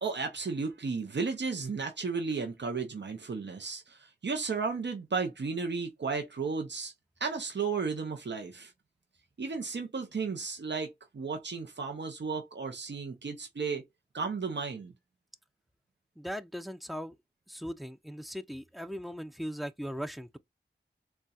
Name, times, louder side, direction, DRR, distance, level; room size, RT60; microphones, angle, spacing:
voice 1, 0.0-6.9 7.2-8.7 9.4-13.8 14.1-14.9, right 4 dB, 85° right, 0.6 m, -34 dB
voice 2, 16.2-17.2 17.5-20.4, equal, ahead, 0.4 m, -39 dB
4.0 x 2.2 x 2.3 m
wide cardioid pair, 45°, 18 cm